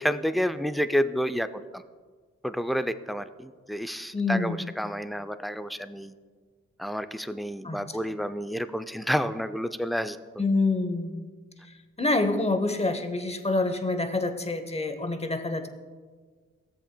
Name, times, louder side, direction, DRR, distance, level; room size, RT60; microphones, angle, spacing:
voice 1, 0.0-1.8 2.4-6.1 6.8-10.2, equal, ahead, 11 dB, 0.4 m, -29 dB
voice 2, 4.1-4.6 7.6-7.8 10.4-11.3 12.0-15.7, left 2 dB, 20° left, 8 dB, 0.9 m, -27 dB
14.5 x 7.5 x 2.2 m, 1.5 s
supercardioid pair, 45°, 31 cm